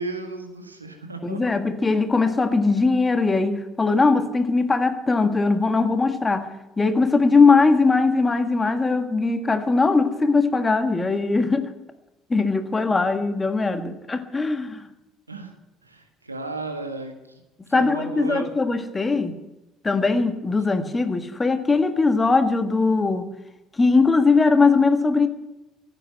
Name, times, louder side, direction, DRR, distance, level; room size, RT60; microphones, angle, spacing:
voice 1, 0.0-1.4 12.8-12.9 15.3-15.5 15.8-17.1 17.7-18.5, right 3 dB, 85° right, 5 dB, 1.7 m, -34 dB
voice 2, 1.2-11.7 12.3-14.8 17.7-19.3 19.8-23.3 23.8-25.3, left 4 dB, 20° left, 8 dB, 1.7 m, -20 dB
15.0 x 9.0 x 9.1 m, 0.99 s
figure-of-eight pair, 55°, 0 cm